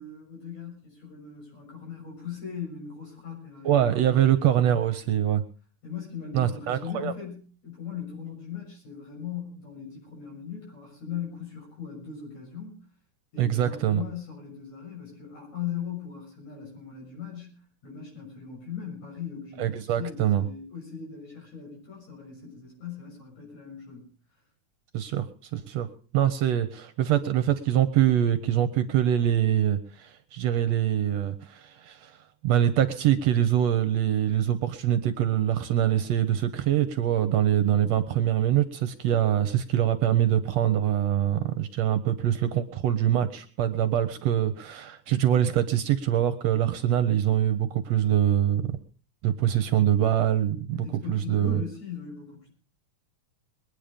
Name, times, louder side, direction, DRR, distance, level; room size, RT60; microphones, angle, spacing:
voice 1, 0.0-4.2 5.8-12.8 13.3-24.1 50.7-52.5, left 8 dB, 65° left, -1 dB, 7.8 m, -39 dB
voice 2, 3.7-5.4 6.3-7.1 13.4-14.0 19.6-20.4 24.9-25.3 25.5-25.9 26.1-32.1 32.4-48.8 49.2-51.6, right 11 dB, 70° right, 11 dB, 1.9 m, -24 dB
22.0 x 9.4 x 5.1 m, 0.40 s
omnidirectional pair, 3.4 m